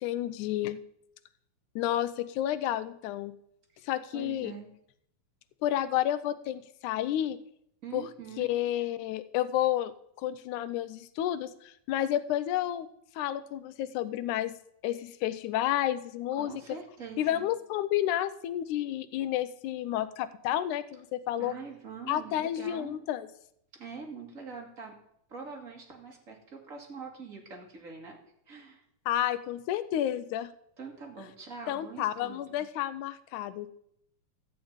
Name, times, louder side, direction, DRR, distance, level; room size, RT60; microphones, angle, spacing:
voice 1, 0.0-0.8 1.8-3.3 3.8-4.5 5.6-7.4 7.9-8.1 8.4-9.9 10.2-12.9 13.2-14.6 14.8-16.5 17.2-21.5 22.1-23.3 29.1-30.5 31.7-33.7, left 12 dB, 80° left, 12 dB, 1.9 m, -30 dB
voice 2, 4.1-4.7 7.8-8.5 16.4-17.5 21.4-23.0 23.7-24.9 25.3-28.2 28.5-28.8 30.8-32.7, right 5 dB, 30° right, 1 dB, 1.8 m, -44 dB
13.5 x 5.1 x 8.7 m, 0.72 s
omnidirectional pair, 3.8 m